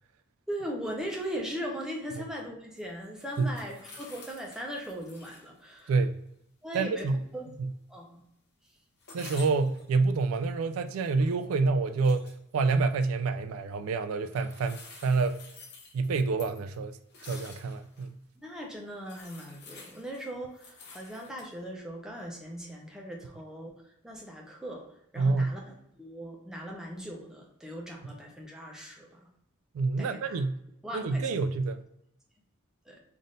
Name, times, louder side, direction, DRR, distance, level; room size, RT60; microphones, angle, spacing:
voice 1, 0.5-5.9 6.6-7.5 7.9-8.2 18.4-24.9 25.1-25.6 26.0-29.3 30.0-30.4 30.8-31.3 32.9-33.0, equal, 5° right, 0.7 m, -39 dB
sound 1, 2.8-5.5 5.8-5.9 9.0-9.9 10.8-11.4 11.9-12.3 14.3-18.1 18.6-18.7 19.0-21.5, left 3 dB, 50° left, 0.9 m, -50 dB
voice 2, 6.7-7.2 7.6-7.7 9.1-12.3 12.5-15.4 15.9-17.0 17.2-18.2 25.2-25.5 29.7-30.6 30.9-31.8, right 4 dB, 85° right, 0.3 m, -27 dB
3.6 x 2.6 x 3.8 m
head